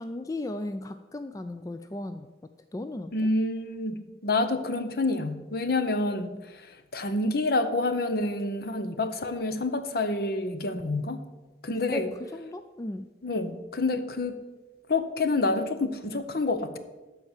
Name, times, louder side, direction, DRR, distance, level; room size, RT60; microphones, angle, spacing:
voice 1, 0.0-2.3 2.7-3.1 11.9-12.1 12.3-13.1, left 1 dB, 20° left, 9 dB, 0.3 m, -35 dB
voice 2, 3.1-11.2 11.6-12.1 13.2-14.4 14.9-16.8, left 2 dB, 55° left, 10 dB, 0.8 m, -28 dB
13.0 x 4.6 x 7.3 m, 1.2 s
head